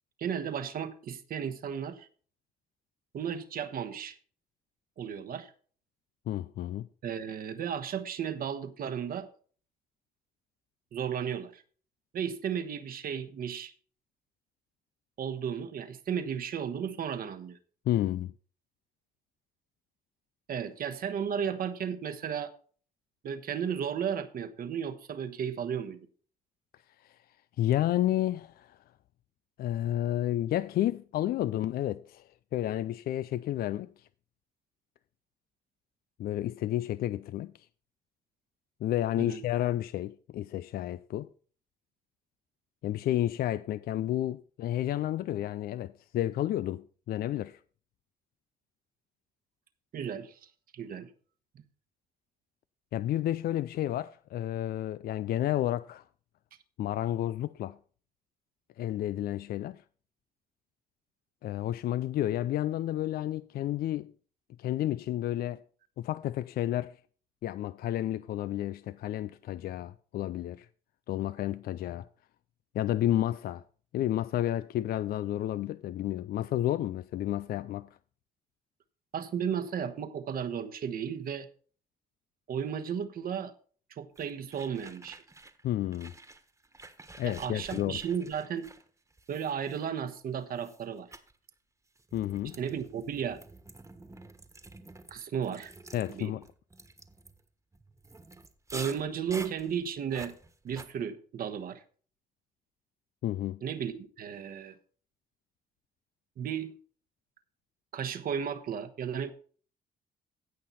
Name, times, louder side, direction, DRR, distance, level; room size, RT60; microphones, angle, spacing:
voice 1, 0.2-2.1 3.1-4.2 5.0-5.5 7.0-9.3 10.9-11.6 12.1-13.7 15.2-17.6 20.5-22.5 23.2-26.0 39.2-39.4 49.9-50.4 50.7-51.1 79.1-81.5 82.5-83.5 83.9-85.2 87.2-88.7 89.3-91.1 92.6-93.4 95.1-95.7 96.1-96.3 98.7-100.3 100.6-101.8 103.6-104.7 106.4-106.7 107.9-109.3, right 8 dB, 65° right, 1.2 m, -34 dB
voice 2, 6.3-6.9 17.9-18.3 27.0-27.2 27.6-28.8 29.6-34.1 36.2-37.7 38.8-41.3 42.8-47.6 52.9-56.0 56.8-57.8 58.8-59.8 61.4-64.1 64.6-65.6 66.0-67.0 67.4-70.7 71.1-72.1 72.7-73.6 73.9-77.9 85.6-86.1 87.2-88.0 92.1-92.6 95.9-96.4 103.2-103.6, left 13 dB, 70° left, 0.4 m, -31 dB
sound 1, 84.1-85.6 85.9-90.1 90.6-90.8 91.1-91.3 92.0-100.9, right 2 dB, 20° right, 1.5 m, -49 dB
16.0 x 5.8 x 4.1 m
cardioid pair, 80°, 16 cm